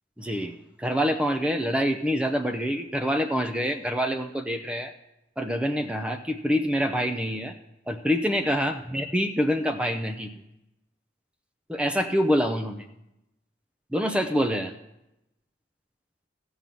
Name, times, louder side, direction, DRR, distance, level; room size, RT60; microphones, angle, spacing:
voice 1, 0.2-0.5 0.8-4.9 5.4-7.5 7.9-10.3 11.7-12.9 13.9-14.7, equal, 5° right, 7 dB, 0.5 m, -26 dB
15.0 x 5.5 x 7.6 m, 0.90 s
head